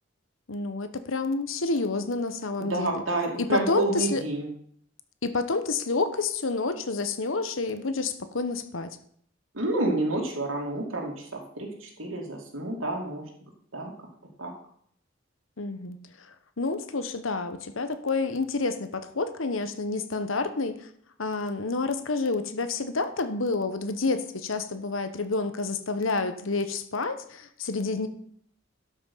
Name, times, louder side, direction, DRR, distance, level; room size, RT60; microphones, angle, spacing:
voice 1, 0.5-2.9 3.4-4.2 5.2-9.0 15.6-20.9 21.2-28.1, left 3 dB, 80° left, 10 dB, 1.1 m, -29 dB
voice 2, 2.7-4.5 9.5-13.3 13.7-13.9 14.4-14.5, right 2 dB, 90° right, -1 dB, 2.7 m, -29 dB
12.0 x 6.2 x 5.6 m, 0.64 s
head